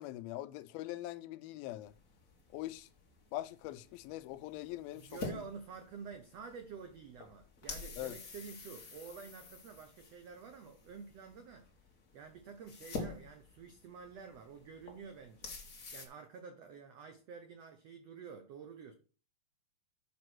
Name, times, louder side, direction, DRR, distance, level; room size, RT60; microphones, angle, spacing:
voice 1, 0.0-1.9 2.5-2.9 3.3-5.4 8.0-8.1, left 15 dB, 85° left, 2.4 m, -42 dB
sound 1, 1.8-16.1, left 3 dB, 50° left, 0.9 m, -49 dB
voice 2, 4.9-11.7 12.1-15.6 15.9-18.9, right 6 dB, 90° right, 1.4 m, -49 dB
7.4 x 5.3 x 6.2 m
omnidirectional pair, 4.3 m